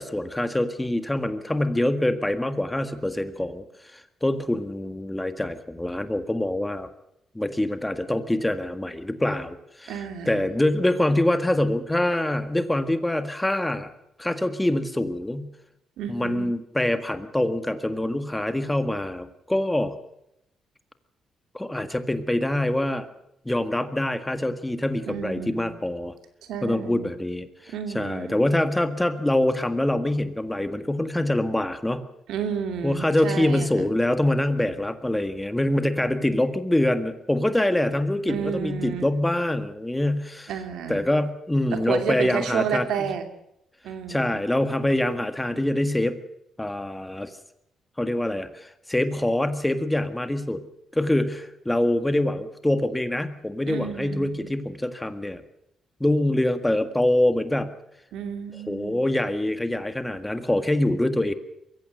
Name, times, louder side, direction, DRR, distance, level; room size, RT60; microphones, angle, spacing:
voice 1, 0.0-3.6 3.9-6.9 7.3-13.9 14.2-15.5 16.1-20.0 21.5-23.1 23.4-26.1 26.6-32.0 32.8-40.5 40.9-43.1 44.1-46.2 46.6-47.3 48.0-50.6 50.9-55.4 56.0-57.7 58.7-61.3, left 1 dB, 10° left, 10 dB, 1.7 m, -25 dB
voice 2, 9.9-10.5 16.0-16.5 25.1-25.7 26.4-27.1 27.7-28.4 32.3-33.9 38.3-39.0 40.5-41.1 41.7-43.2 43.8-44.4 53.7-54.5 58.1-59.0, right 7 dB, 80° right, 7 dB, 2.6 m, -31 dB
22.5 x 15.5 x 7.8 m, 0.79 s
cardioid pair, 90°, 0 cm